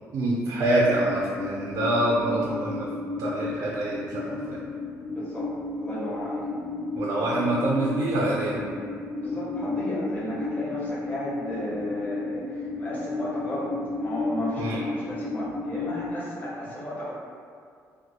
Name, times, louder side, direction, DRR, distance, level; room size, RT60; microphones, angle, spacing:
voice 1, 0.1-2.9 3.2-4.6 6.9-8.6 14.6-14.8, right 1 dB, 85° right, -5 dB, 0.4 m, -25 dB
sound 1, 0.7-16.1, left 3 dB, 70° left, 0.6 m, -33 dB
voice 2, 5.1-5.5 5.8-6.5 9.2-13.7 14.0-17.1, equal, 25° left, -7 dB, 0.7 m, -34 dB
2.2 x 2.0 x 2.7 m, 2.2 s
cardioid pair, 145°, 6 cm